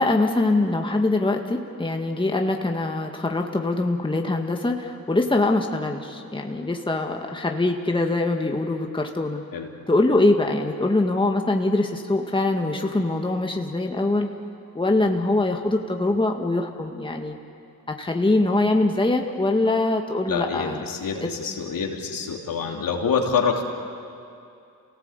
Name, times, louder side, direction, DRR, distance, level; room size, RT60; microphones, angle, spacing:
voice 1, 0.0-9.4 9.9-14.3 14.7-17.4 17.9-20.9, left 2 dB, 15° left, 3 dB, 2.0 m, -23 dB
voice 2, 20.3-23.6, left 5 dB, 70° left, 1 dB, 3.2 m, -26 dB
28.0 x 18.0 x 8.3 m, 2.5 s
cardioid pair, 70°, 36 cm